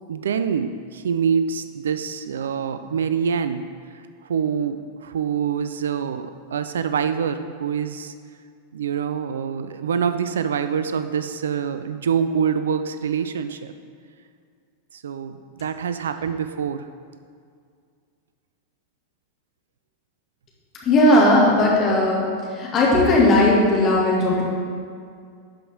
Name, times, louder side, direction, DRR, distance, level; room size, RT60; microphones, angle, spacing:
voice 1, 0.1-3.7 3.9-8.1 8.7-13.7 14.9-16.9, right 7 dB, 65° right, 10 dB, 0.3 m, -25 dB
voice 2, 20.8-22.2 22.5-24.4, left 1 dB, 30° left, -4 dB, 2.1 m, -17 dB
11.5 x 5.0 x 3.6 m, 2.2 s
figure-of-eight pair, 90°, 0 cm